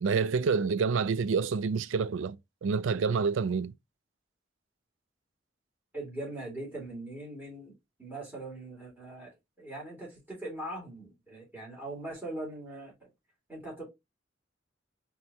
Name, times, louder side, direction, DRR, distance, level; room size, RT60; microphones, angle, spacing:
voice 1, 0.0-2.4 2.6-3.7, right 5 dB, 85° right, 0.4 m, -28 dB
voice 2, 5.9-7.7 8.0-13.1 13.5-13.9, right 1 dB, 10° right, 2.4 m, -41 dB
4.3 x 2.9 x 3.4 m
head